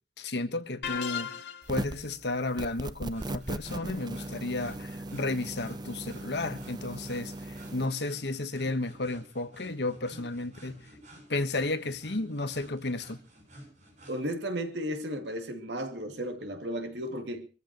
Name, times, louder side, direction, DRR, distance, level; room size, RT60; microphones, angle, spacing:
voice 1, 0.2-10.8 11.3-13.2, left 2 dB, 70° left, 1.4 m, -33 dB
sound 1, 0.8-1.9, left 8 dB, 90° left, 1.8 m, -35 dB
sound 2, 1.6-2.1 2.6-7.9, right 1 dB, 25° right, 0.7 m, -38 dB
sound 3, 3.1-14.2, equal, 45° right, 7.9 m, -52 dB
voice 2, 14.1-17.5, equal, 80° right, 2.5 m, -34 dB
24.0 x 14.5 x 3.1 m
head